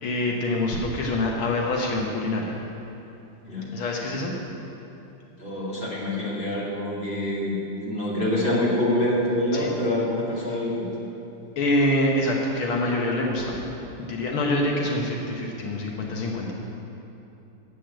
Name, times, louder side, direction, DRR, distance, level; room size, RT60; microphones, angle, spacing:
voice 1, 0.0-2.6 3.7-4.3 9.5-9.7 10.5-10.6 11.6-13.6 14.1-16.5, left 1 dB, 80° left, -1 dB, 1.9 m, -25 dB
voice 2, 5.4-10.7, left 1 dB, 25° left, -7 dB, 2.5 m, -26 dB
8.5 x 7.6 x 8.9 m, 2.9 s
omnidirectional pair, 2.3 m